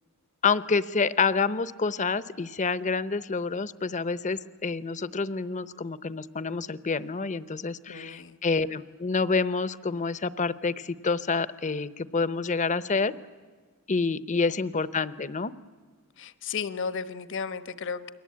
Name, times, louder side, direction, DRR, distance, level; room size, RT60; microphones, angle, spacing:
voice 1, 0.4-13.1 13.9-15.5, left 4 dB, 35° left, 15 dB, 0.8 m, -28 dB
voice 2, 7.9-8.4 16.2-18.1, left 5 dB, 60° left, 13 dB, 1.1 m, -34 dB
29.0 x 22.0 x 8.6 m, 1.5 s
head